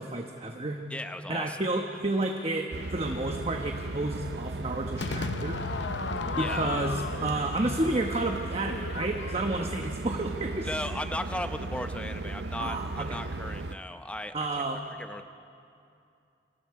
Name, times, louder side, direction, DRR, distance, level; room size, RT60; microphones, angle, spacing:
voice 1, 0.0-0.8 1.3-5.6 6.4-10.7 12.6-13.2 14.3-14.8, right 2 dB, 35° right, 3 dB, 1.1 m, -31 dB
voice 2, 0.9-1.7 6.4-6.7 10.6-14.6 15.0-15.2, left 1 dB, 5° left, 8 dB, 0.7 m, -36 dB
sound 1, 2.7-13.8, right 2 dB, 70° right, 0.7 m, -36 dB
Crowd / Fireworks, 5.0-10.2, left 5 dB, 90° left, 0.6 m, -36 dB
29.0 x 24.0 x 4.8 m, 2.5 s
head